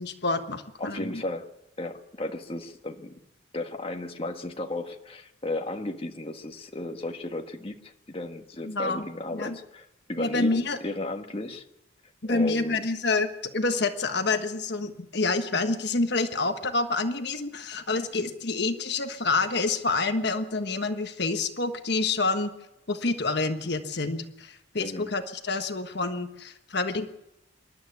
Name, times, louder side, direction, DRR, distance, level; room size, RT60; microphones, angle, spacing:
voice 1, 0.0-1.2 8.6-9.0 9.3-9.6 10.2-10.8 12.2-22.5 22.9-27.1, left 3 dB, 55° left, 7 dB, 1.3 m, -28 dB
voice 2, 0.8-1.5 1.8-3.2 3.5-11.6 12.2-12.8 24.8-25.1, left 2 dB, 30° left, 4 dB, 1.5 m, -34 dB
27.0 x 12.5 x 9.5 m, 0.91 s
head